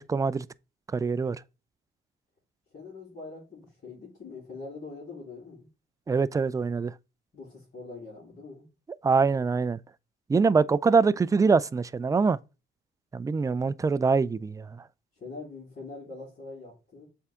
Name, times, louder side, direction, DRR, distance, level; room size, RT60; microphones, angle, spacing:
voice 1, 0.1-0.5 0.9-1.4 6.1-6.9 9.0-9.8 10.3-12.4 13.1-14.8, right 4 dB, 15° right, 0.3 m, -24 dB
voice 2, 2.7-5.7 7.3-8.6 15.2-17.0, left 3 dB, 45° left, 3.2 m, -43 dB
7.3 x 3.6 x 3.6 m
cardioid pair, 90°, 20 cm